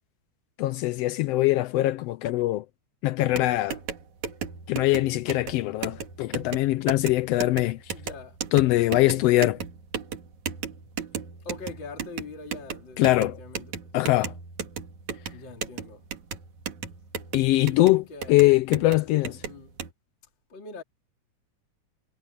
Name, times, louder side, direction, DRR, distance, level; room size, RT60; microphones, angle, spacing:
voice 1, 0.6-2.6 3.0-3.8 4.7-7.8 8.5-9.6 13.0-13.4 13.9-14.3 17.3-19.4, left 17 dB, 85° left, 1.4 m, -22 dB
sound 1, 3.2-19.9, right 7 dB, 75° right, 3.8 m, -36 dB
voice 2, 7.9-8.4 11.4-13.9 15.3-16.0 17.5-18.4 19.5-19.8 20.5-20.8, left 3 dB, 40° left, 3.7 m, -43 dB
omnidirectional pair, 3.4 m